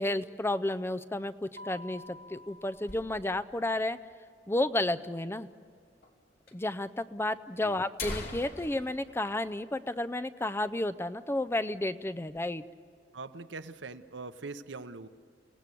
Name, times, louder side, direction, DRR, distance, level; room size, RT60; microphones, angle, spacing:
voice 1, 0.0-4.0 4.5-5.5 6.5-12.6, left 1 dB, 15° left, 12 dB, 0.5 m, -32 dB
Mallet percussion, 1.6-3.6, equal, 50° right, 0.6 m, -50 dB
sound 1, 1.8-3.6 3.9-4.0 4.2-4.3 5.0-5.1 6.0-6.1 6.5-6.6 7.3-7.4 7.8-10.4 10.7-10.8 11.2-11.5 11.9-12.5, left 2 dB, 55° left, 2.7 m, -43 dB
voice 2, 13.1-15.1, right 3 dB, 80° right, 11 dB, 0.9 m, -42 dB
29.5 x 17.0 x 8.4 m, 2.2 s
head